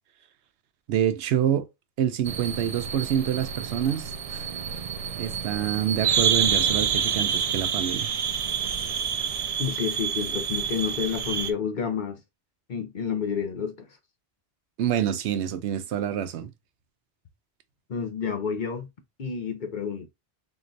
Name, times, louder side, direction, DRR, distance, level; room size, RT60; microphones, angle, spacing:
voice 1, 0.9-1.7 2.0-4.5 5.2-8.1 14.8-16.5, right 10 dB, 90° right, 0.9 m, -27 dB
sound 1, 2.3-11.5, right 8 dB, 60° right, 0.4 m, -28 dB
voice 2, 9.6-12.2 12.7-13.9 17.9-18.9 19.2-20.1, left 6 dB, 50° left, 0.8 m, -29 dB
3.9 x 3.1 x 2.5 m
omnidirectional pair, 1.1 m